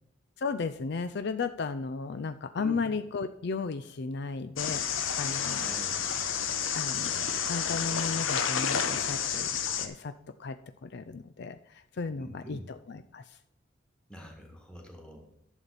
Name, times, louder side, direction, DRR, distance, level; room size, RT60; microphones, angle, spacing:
voice 1, 0.4-5.7 6.7-9.5 9.8-10.1 10.4-13.4, left 4 dB, 60° left, 11 dB, 0.4 m, -35 dB
sound 1, 4.6-9.9, left 7 dB, 85° left, 0.9 m, -30 dB
voice 2, 5.5-6.0 12.2-12.6 14.1-15.3, equal, 5° left, 1 dB, 1.8 m, -45 dB
11.0 x 7.0 x 4.1 m, 0.80 s
head